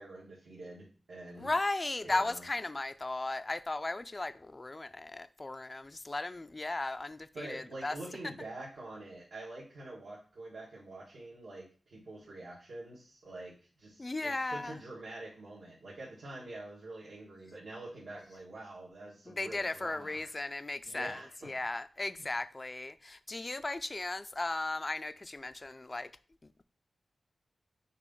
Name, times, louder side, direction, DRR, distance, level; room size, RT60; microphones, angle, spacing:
voice 1, 0.0-1.5 2.0-2.4 7.3-20.3 20.8-21.5 22.1-22.2, right 2 dB, 75° right, 1.8 m, -46 dB
voice 2, 1.4-8.0 14.0-14.8 19.3-26.1 26.4-26.6, left 2 dB, 25° left, 0.3 m, -36 dB
6.4 x 2.9 x 5.4 m
wide cardioid pair, 145°, 0 cm